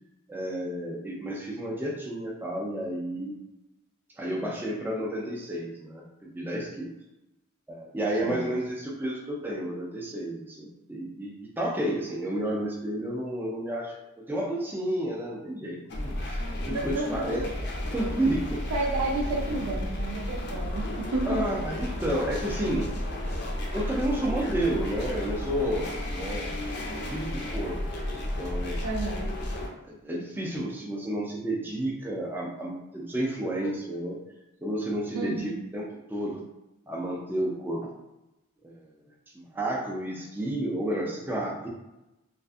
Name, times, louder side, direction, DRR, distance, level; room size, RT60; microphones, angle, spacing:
voice 1, 0.3-3.4 4.2-6.9 7.7-14.0 14.3-15.8 16.0-17.5 17.9-18.6 21.3-22.9 23.7-26.5 26.8-27.8 28.1-28.8 29.9-34.2 34.6-36.4 36.9-37.9 38.6-38.9 39.5-41.7, right 1 dB, 10° right, -3 dB, 0.3 m, -31 dB
sound 1, 15.9-29.7, left 1 dB, 50° left, 0.5 m, -33 dB
voice 2, 18.7-21.4 28.8-29.3 35.1-35.6, right 2 dB, 85° right, -2 dB, 0.4 m, -31 dB
2.5 x 2.4 x 2.3 m, 0.95 s
head